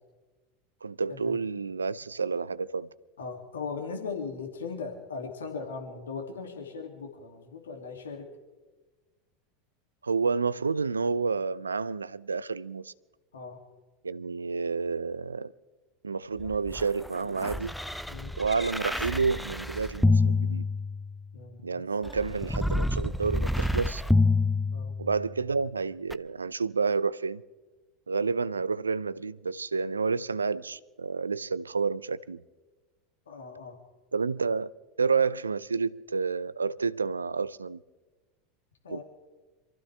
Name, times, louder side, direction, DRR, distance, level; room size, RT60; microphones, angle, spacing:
voice 1, 0.8-2.9 10.0-12.9 14.0-15.5 16.0-17.8 18.4-20.6 21.6-24.0 25.0-27.4 28.1-32.4 34.1-34.7 35.0-37.8 38.9-39.0, right 4 dB, 85° right, 0.5 m, -29 dB
voice 2, 3.2-8.3 13.3-13.6 18.1-18.3 21.3-21.8 24.7-24.9 33.3-33.8 38.8-39.0, left 5 dB, 80° left, 2.4 m, -38 dB
sound 1, 16.4-21.3 22.0-25.4 26.1-26.2, left 2 dB, ahead, 0.6 m, -28 dB
26.5 x 15.0 x 3.4 m
figure-of-eight pair, 80°, 0 cm